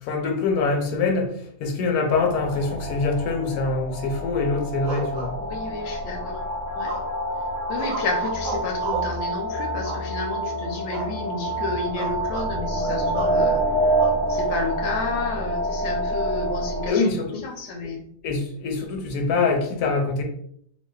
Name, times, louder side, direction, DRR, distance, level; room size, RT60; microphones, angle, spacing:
voice 1, 0.0-5.4 16.9-17.5 17.8-17.9 18.2-20.2, left 4 dB, 85° left, 3 dB, 1.1 m, -24 dB
sound 1, 2.1-16.9, right 1 dB, 20° right, 0.4 m, -27 dB
sound 2, 4.8-5.9 6.8-7.3 7.7-9.2 9.8-10.4 10.9-11.2 11.5-11.6 12.0-12.5 13.1-13.4 14.0-14.7, right 3 dB, 70° right, 0.9 m, -34 dB
voice 2, 5.4-6.4 6.8-6.9 7.7-13.9 14.3-17.1 17.4-18.0, left 3 dB, 65° left, 2 dB, 0.7 m, -31 dB
2.5 x 2.2 x 2.2 m, 0.67 s
omnidirectional pair, 1.6 m